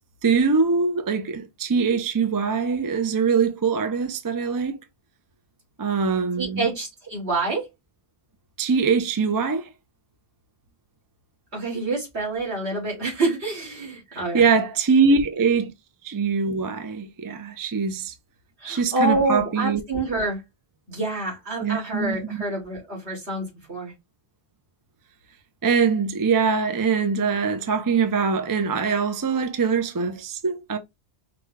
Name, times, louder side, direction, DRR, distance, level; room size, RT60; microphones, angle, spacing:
voice 1, 0.2-4.8 5.8-6.7 8.6-9.7 14.1-15.7 16.0-18.1 18.6-19.8 21.6-22.4 25.6-30.8, right 5 dB, 30° right, 0.4 m, -23 dB
voice 2, 6.4-7.7 11.5-14.5 18.6-20.4 20.9-23.9, right 2 dB, 75° right, 2.7 m, -27 dB
5.0 x 2.2 x 3.4 m
omnidirectional pair, 1.1 m